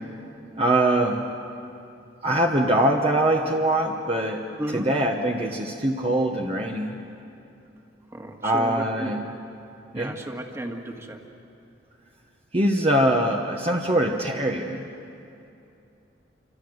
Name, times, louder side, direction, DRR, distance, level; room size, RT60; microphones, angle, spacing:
voice 1, 0.6-1.2 2.2-4.4 4.7-7.0 8.4-9.2 9.9-10.1 12.5-14.8, right 1 dB, 30° right, 1 dB, 1.3 m, -23 dB
voice 2, 4.6-4.9 8.1-9.1 9.9-11.2, right 1 dB, 15° right, 3 dB, 2.0 m, -33 dB
28.0 x 26.0 x 8.0 m, 2.7 s
head